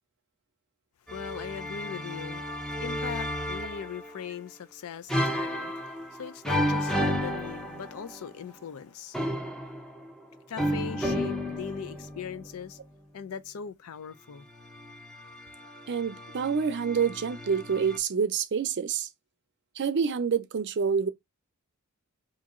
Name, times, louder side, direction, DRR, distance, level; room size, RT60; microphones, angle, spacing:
voice 1, 1.1-9.2 10.5-12.8 13.1-14.5, left 7 dB, 70° left, 0.4 m, -40 dB
sound 1, 1.1-4.2 5.1-8.3 9.1-12.5 14.6-18.0, equal, 5° left, 0.5 m, -32 dB
voice 2, 15.9-19.1 19.8-21.1, right 6 dB, 50° right, 0.4 m, -27 dB
3.0 x 2.6 x 3.5 m
head